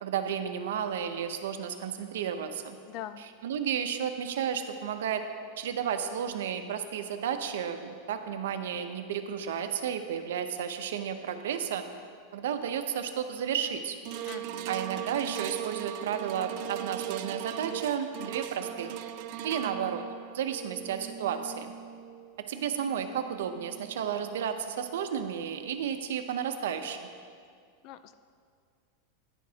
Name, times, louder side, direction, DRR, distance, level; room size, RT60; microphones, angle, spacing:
voice 1, 0.0-2.8 3.2-5.2 5.6-11.8 12.3-14.0 14.7-19.0 19.4-20.0 20.3-21.7 22.5-27.1, right 8 dB, 85° right, 8 dB, 0.7 m, -32 dB
voice 2, 2.9-3.2 14.2-14.8 27.8-28.1, left 11 dB, 35° left, 12 dB, 0.3 m, -42 dB
sound 1, 14.0-24.4 25.0-25.1, right 11 dB, 45° right, 0.3 m, -39 dB
10.5 x 10.0 x 2.8 m, 2.2 s
supercardioid pair, 165°, 0 cm